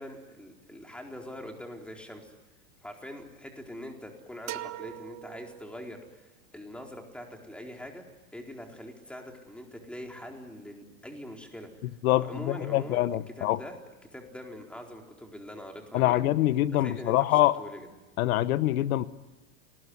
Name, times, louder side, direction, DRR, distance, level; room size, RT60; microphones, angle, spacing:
voice 1, 0.0-2.3 2.8-8.0 8.3-11.7 12.1-13.8 14.1-16.3 16.7-17.9, left 1 dB, 5° left, 2 dB, 4.3 m, -43 dB
sound 1, 4.5-6.2, right 15 dB, 40° right, 1.2 m, -41 dB
voice 2, 12.0-13.6 15.9-17.5 18.2-19.1, left 15 dB, 80° left, 15 dB, 1.1 m, -25 dB
29.5 x 20.0 x 9.7 m, 1.2 s
supercardioid pair, 135°, 42 cm